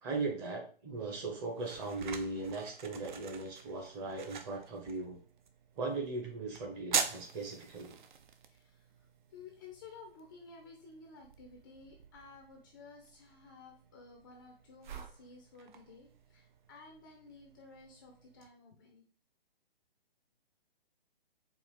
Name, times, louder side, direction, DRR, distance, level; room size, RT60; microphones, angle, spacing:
voice 1, 0.0-5.2 5.8-7.9, right 3 dB, 20° right, 1 dB, 0.8 m, -38 dB
sound 1, 0.9-18.5, right 6 dB, 50° right, 0.6 m, -45 dB
voice 2, 8.5-8.9 9.3-19.0, left 4 dB, 20° left, 1 dB, 0.5 m, -54 dB
4.5 x 2.4 x 3.5 m, 0.42 s
figure-of-eight pair, 135°, 30 cm